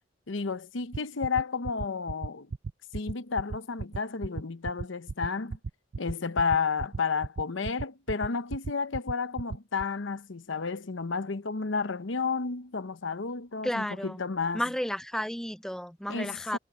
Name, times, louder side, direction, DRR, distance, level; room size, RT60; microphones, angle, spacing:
voice 1, 0.3-2.5 2.9-5.6 6.0-14.6 16.1-16.6, left 5 dB, 90° left, 0.9 m, -31 dB
sound 1, 0.9-9.8, right 4 dB, 80° right, 0.5 m, -34 dB
voice 2, 13.6-14.2 14.5-16.6, equal, 5° left, 0.6 m, -32 dB
head